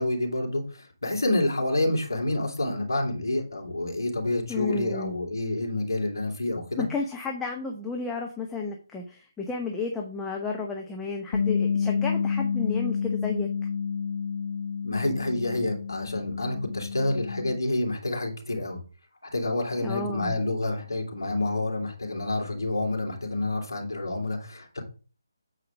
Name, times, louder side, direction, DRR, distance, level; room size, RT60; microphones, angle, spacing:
voice 1, 0.0-6.8 14.8-18.8 19.3-24.9, left 2 dB, 70° left, 1 dB, 3.1 m, -28 dB
voice 2, 4.5-5.2 6.8-13.5 19.8-20.3, left 4 dB, 5° left, 0 dB, 0.8 m, -32 dB
Bass guitar, 11.3-17.6, left 6 dB, 50° left, 0.9 m, -29 dB
8.7 x 4.8 x 4.8 m, 0.36 s
figure-of-eight pair, 150°, 2 cm